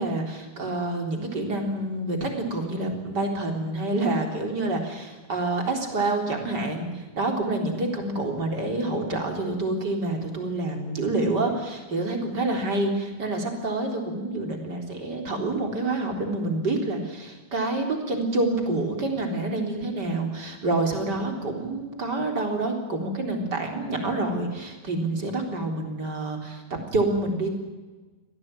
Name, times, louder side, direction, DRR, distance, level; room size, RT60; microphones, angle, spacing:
voice 1, 0.0-26.6 26.9-27.5, right 2 dB, 30° right, 3 dB, 4.2 m, -27 dB
26.0 x 17.0 x 9.1 m, 1.3 s
omnidirectional pair, 3.6 m